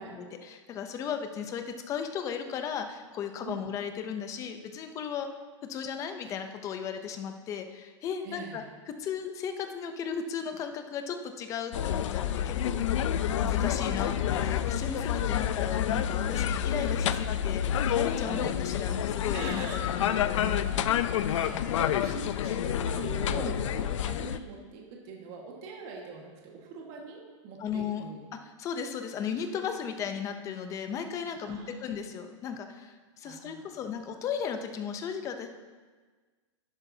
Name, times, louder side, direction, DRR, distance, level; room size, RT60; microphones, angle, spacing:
voice 1, 0.1-5.3 5.7-13.1 13.4-19.6 19.9-20.8 23.3-23.5 27.6-28.0 28.4-35.5, left 7 dB, 20° left, 7 dB, 0.6 m, -36 dB
voice 2, 8.2-8.6 18.2-18.5 19.3-19.8 20.7-21.0 21.3-28.2 31.4-31.9 33.2-33.8, right 4 dB, 35° right, -1 dB, 1.7 m, -43 dB
sound 1, 11.7-24.4, left 9 dB, 80° left, 0.5 m, -28 dB
11.0 x 11.0 x 2.8 m, 1.4 s
supercardioid pair, 165°, 16 cm